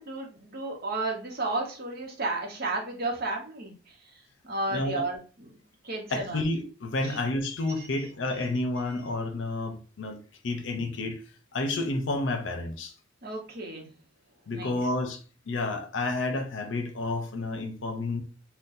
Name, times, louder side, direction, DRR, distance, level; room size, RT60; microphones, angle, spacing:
voice 1, 0.0-3.7 4.4-5.2 5.8-6.4 7.1-7.2 13.2-13.9 14.5-14.8, right 2 dB, 55° right, 0.9 m, -32 dB
voice 2, 4.7-5.0 6.1-10.2 10.4-11.2 11.5-12.9 14.5-15.2 15.5-18.2, left 2 dB, 75° left, 0.6 m, -30 dB
3.9 x 2.2 x 2.6 m
head